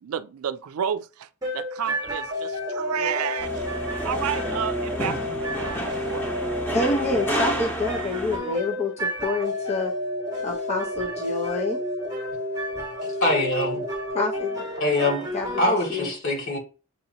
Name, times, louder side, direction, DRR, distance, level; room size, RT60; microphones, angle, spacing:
voice 1, 0.0-3.7 4.0-6.2, right 8 dB, 75° right, 0.4 m, -31 dB
sound 1, 1.4-15.7, equal, 20° right, 1.1 m, -31 dB
sound 2, 3.4-8.4, equal, 10° left, 1.0 m, -31 dB
voice 2, 6.7-9.9 10.4-11.8 14.1-14.7 15.3-16.1, left 3 dB, 30° left, 0.7 m, -27 dB
voice 3, 13.0-13.8 14.8-15.3 15.6-16.6, left 1 dB, 65° left, 2.4 m, -24 dB
6.8 x 2.7 x 2.9 m
head